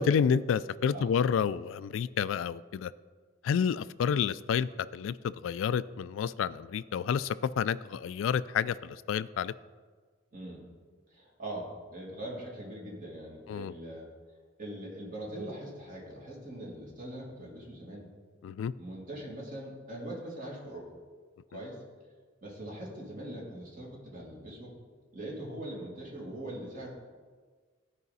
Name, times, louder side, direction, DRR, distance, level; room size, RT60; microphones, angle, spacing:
voice 1, 0.0-2.9 3.4-9.5 13.5-13.7 18.4-18.7, left 7 dB, 80° left, 18 dB, 0.3 m, -29 dB
voice 2, 10.3-10.6 11.1-14.1 14.6-18.1 18.7-20.9 21.5-21.8 22.4-24.7 25.1-26.9, right 1 dB, 45° right, -3 dB, 2.4 m, -41 dB
14.5 x 5.0 x 4.1 m, 1.5 s
head